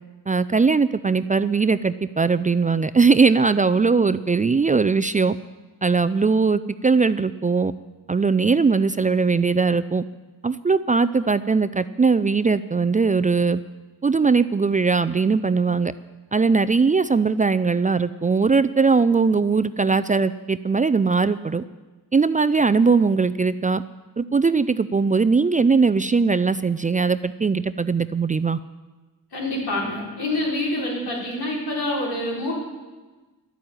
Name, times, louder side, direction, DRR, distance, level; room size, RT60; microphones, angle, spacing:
voice 1, 0.3-5.4 5.8-7.7 8.1-10.0 10.4-13.6 14.0-15.9 16.3-21.6 22.1-23.8 24.2-28.6, right 4 dB, 20° right, 13 dB, 0.4 m, -20 dB
voice 2, 29.3-32.5, left 1 dB, 85° left, -3 dB, 5.0 m, -26 dB
11.5 x 8.8 x 9.3 m, 1.2 s
cardioid pair, 85°, 37 cm